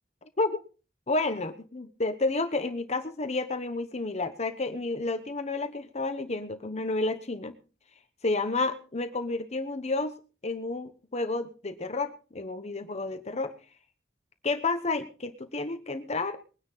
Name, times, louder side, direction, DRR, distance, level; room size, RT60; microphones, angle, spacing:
voice 1, 1.1-7.5 8.2-10.1 10.4-13.5 14.4-16.4, left 3 dB, 40° left, 9 dB, 1.1 m, -30 dB
21.5 x 10.0 x 4.1 m, 0.35 s
head